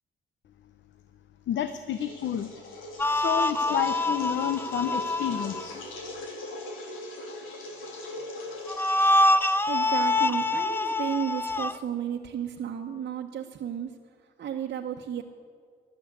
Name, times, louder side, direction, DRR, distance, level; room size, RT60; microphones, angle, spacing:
voice 1, 1.5-2.5 3.0-5.8, left 10 dB, 70° left, 10 dB, 0.8 m, -30 dB
sound 1, 1.9-10.5, left 2 dB, 90° left, 2.8 m, -41 dB
sound 2, 3.0-5.7 8.7-11.7, left 2 dB, 10° left, 0.5 m, -25 dB
voice 2, 9.7-13.9 14.4-15.2, right 9 dB, 55° right, 0 dB, 1.1 m, -33 dB
15.0 x 11.5 x 8.3 m, 2.1 s
cardioid pair, 90°, 20 cm